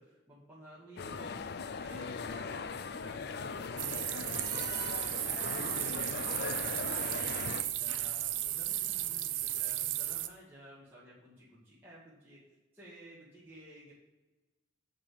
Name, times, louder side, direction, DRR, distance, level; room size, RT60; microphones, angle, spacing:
voice 1, 0.0-1.3 1.8-12.4 12.7-13.9, right 1 dB, 10° right, -10 dB, 1.9 m, -54 dB
sound 1, 1.0-7.6, left 5 dB, 55° left, 0.4 m, -39 dB
sound 2, 3.8-10.3, right 13 dB, 75° right, 0.6 m, -35 dB
7.0 x 5.7 x 4.8 m, 1.1 s
head